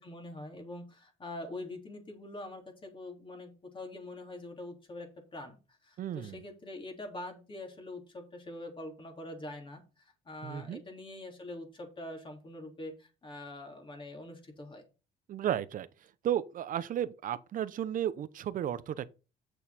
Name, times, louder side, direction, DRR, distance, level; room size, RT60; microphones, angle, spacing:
voice 1, 0.0-14.8, left 1 dB, 30° left, 3.4 m, -44 dB
voice 2, 6.0-6.4 10.4-10.8 15.3-15.9 16.2-19.1, right 10 dB, 55° right, 0.8 m, -33 dB
8.1 x 6.9 x 4.3 m
cardioid pair, 110°, 17 cm